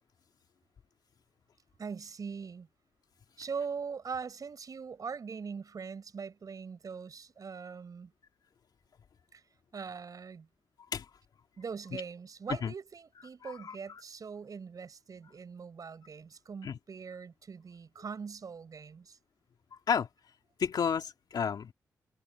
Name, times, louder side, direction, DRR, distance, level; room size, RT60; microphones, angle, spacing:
voice 1, 1.8-2.7 3.4-8.1 9.3-9.4 9.7-10.5 11.6-19.2, right 5 dB, 55° right, 5.8 m, -41 dB
voice 2, 13.4-13.7 16.6-16.8 19.9-20.1 20.6-21.7, left 7 dB, 70° left, 2.6 m, -31 dB
cardioid pair, 60°, 7 cm